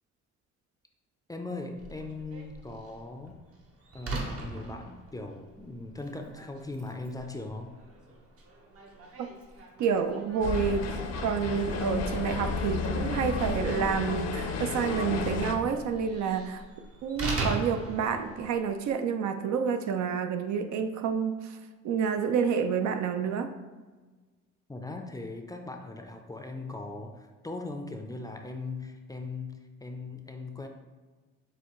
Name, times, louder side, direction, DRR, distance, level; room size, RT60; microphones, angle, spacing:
voice 1, 1.3-3.4 3.9-7.7 24.7-30.7, left 3 dB, 10° left, 3 dB, 0.4 m, -39 dB
Slam, 1.8-18.9, right 2 dB, 50° right, 0.9 m, -41 dB
voice 2, 9.8-16.6 17.0-21.6 21.8-23.5, right 6 dB, 65° right, 7 dB, 0.5 m, -29 dB
sound 1, 10.4-15.6, left 4 dB, 55° left, 0.6 m, -32 dB
6.6 x 2.4 x 3.0 m, 1.3 s
cardioid pair, 90°, 30 cm